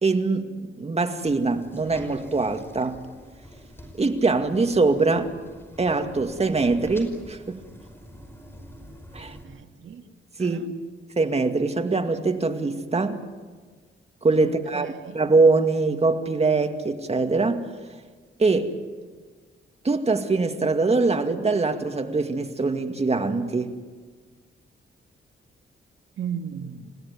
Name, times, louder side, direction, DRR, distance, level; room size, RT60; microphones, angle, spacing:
voice 1, 0.0-3.0 4.0-5.3 5.8-7.6 9.1-9.4 10.4-10.6 11.2-13.2 14.2-14.9 15.1-17.7 18.4-18.7 19.8-23.7, right 3 dB, 30° right, 2.2 m, -23 dB
sound 1, 1.2-9.4, equal, 10° left, 5.3 m, -46 dB
voice 2, 9.2-10.1 10.4-10.7 14.4-15.2 26.2-26.9, right 8 dB, 75° right, 1.9 m, -36 dB
29.5 x 17.0 x 9.7 m
cardioid pair, 100°, 20 cm